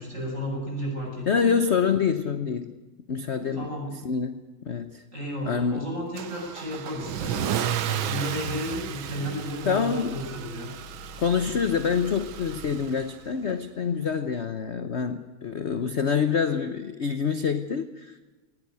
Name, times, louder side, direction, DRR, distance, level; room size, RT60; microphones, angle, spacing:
voice 1, 0.0-1.5 3.5-3.9 5.1-10.7, equal, 35° right, -1 dB, 8.1 m, -33 dB
voice 2, 1.3-2.8 3.1-3.7 4.0-4.4 4.6-5.0 5.4-5.8 9.6-10.2 11.2-18.3, left 6 dB, 45° left, 10 dB, 0.9 m, -26 dB
Car / Engine starting / Accelerating revving vroom, 6.2-13.3, right 10 dB, 85° right, 1.8 m, -33 dB
19.0 x 17.5 x 9.5 m, 1.2 s
omnidirectional pair, 2.2 m